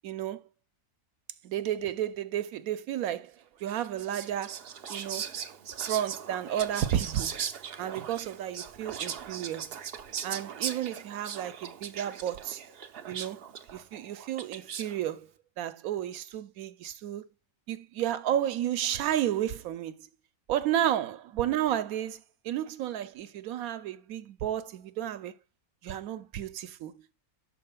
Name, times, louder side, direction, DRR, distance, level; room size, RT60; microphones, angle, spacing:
voice 1, 0.0-0.5 1.4-3.3 3.6-4.6 4.9-5.3 5.9-7.4 7.8-9.8 10.2-12.6 13.1-13.4 13.7-15.3 15.6-17.3 17.7-20.1 20.5-25.3 25.8-27.1, right 11 dB, 80° right, 1.0 m, -32 dB
Whispering, 3.7-15.0, right 8 dB, 55° right, 0.7 m, -39 dB
12.0 x 4.6 x 2.2 m
omnidirectional pair, 1.5 m